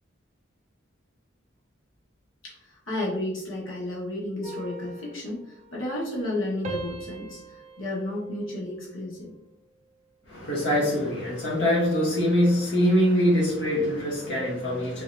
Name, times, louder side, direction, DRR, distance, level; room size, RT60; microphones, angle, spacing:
voice 1, 2.4-9.3, left 1 dB, 85° left, -5 dB, 1.5 m, -32 dB
sound 1, 4.4-6.3 6.6-9.2 9.7-10.0, right 2 dB, 35° right, 0.6 m, -41 dB
voice 2, 10.3-15.0, equal, 60° left, -6 dB, 1.3 m, -23 dB
3.8 x 3.2 x 2.7 m, 0.82 s
head